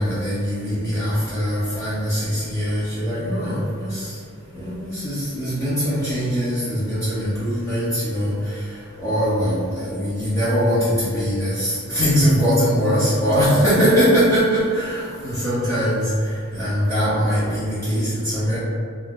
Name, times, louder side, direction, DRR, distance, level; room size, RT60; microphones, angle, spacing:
voice 1, 0.0-4.2 4.5-18.6, equal, 15° left, -12 dB, 0.6 m, -22 dB
2.6 x 2.2 x 3.5 m, 2.3 s
head